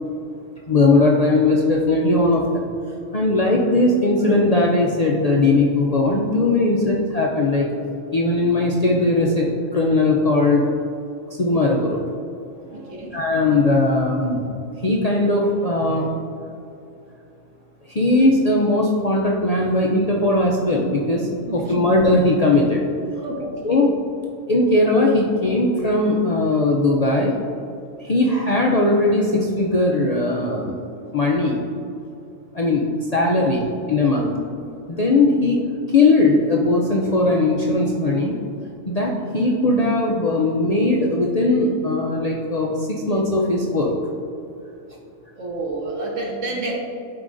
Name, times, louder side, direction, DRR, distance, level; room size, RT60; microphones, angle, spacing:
voice 1, 0.7-2.7 3.1-7.7 8.1-10.7 11.3-12.0 12.7-12.8 13.1-14.5 14.8-16.1 17.9-22.8 23.6-23.9 24.5-27.3 28.0-30.8 31.1-31.6 32.5-34.3 34.9-35.6 35.9-38.4 38.9-43.9, left 2 dB, 50° left, -2 dB, 0.4 m, -19 dB
voice 2, 6.6-6.9 12.7-13.2 21.5-21.6 23.2-23.8 34.1-34.4 45.4-46.7, right 2 dB, 70° right, 0 dB, 1.4 m, -30 dB
11.5 x 4.8 x 2.5 m, 2.6 s
omnidirectional pair, 1.3 m